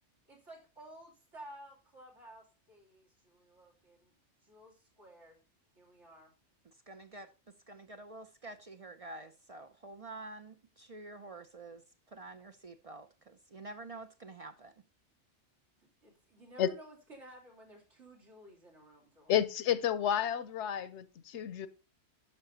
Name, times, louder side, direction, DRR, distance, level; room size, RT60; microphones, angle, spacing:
voice 1, 0.3-4.1 4.4-5.4 5.8-6.3 15.8-19.3, right 1 dB, 80° right, 3.3 m, -54 dB
voice 2, 6.7-11.8 12.1-14.7, right 2 dB, 45° right, 0.5 m, -48 dB
voice 3, 19.3-21.7, left 10 dB, 80° left, 0.9 m, -31 dB
12.0 x 5.8 x 2.7 m
omnidirectional pair, 1.2 m